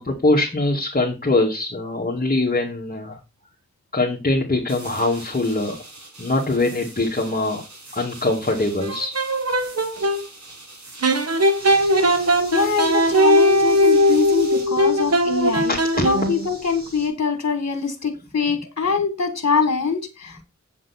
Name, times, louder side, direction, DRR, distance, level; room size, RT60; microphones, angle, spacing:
voice 1, 0.0-3.2 3.9-5.8 6.2-7.6 7.9-9.1 15.7-16.1, left 2 dB, 30° left, -2 dB, 2.3 m, -22 dB
sound 1, 4.7-14.6, right 2 dB, 75° right, 4.5 m, -43 dB
sound 2, 8.8-10.2 11.0-16.5, equal, 55° right, 1.4 m, -19 dB
sound 3, 11.6-17.1, equal, 30° right, 4.2 m, -42 dB
voice 2, 12.5-20.4, left 5 dB, 60° left, 8 dB, 1.8 m, -23 dB
8.3 x 7.3 x 4.3 m, 0.27 s
wide cardioid pair, 70°, 29 cm